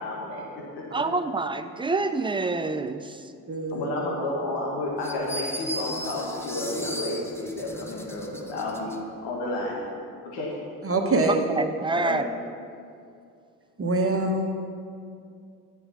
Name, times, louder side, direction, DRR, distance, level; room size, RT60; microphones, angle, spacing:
voice 1, 0.0-0.9 3.7-8.9 9.2-9.8 10.2-10.6 12.0-12.2, left 2 dB, 65° left, -3 dB, 1.7 m, -31 dB
voice 2, 0.9-3.2 11.3-12.2, right 3 dB, 10° right, 10 dB, 0.6 m, -27 dB
voice 3, 3.5-3.8 10.8-11.5 13.8-14.5, right 2 dB, 30° right, 2 dB, 1.4 m, -24 dB
sound 1, 5.0-9.0, equal, 5° left, 0.9 m, -37 dB
9.7 x 6.9 x 5.8 m, 2.4 s
hypercardioid pair, 50°, 44 cm